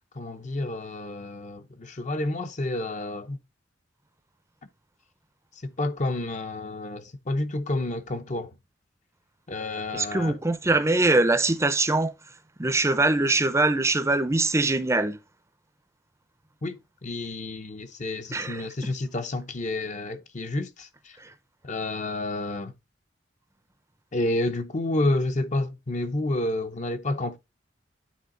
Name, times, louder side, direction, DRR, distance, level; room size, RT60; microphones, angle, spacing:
voice 1, 0.1-3.4 5.6-8.5 9.5-10.4 16.6-21.2 21.6-22.7 24.1-27.4, left 2 dB, 40° left, 0.8 m, -30 dB
voice 2, 9.9-12.1 12.6-15.2 18.3-18.9 21.2-21.3, right 2 dB, 15° right, 0.6 m, -23 dB
9.4 x 3.9 x 3.8 m
head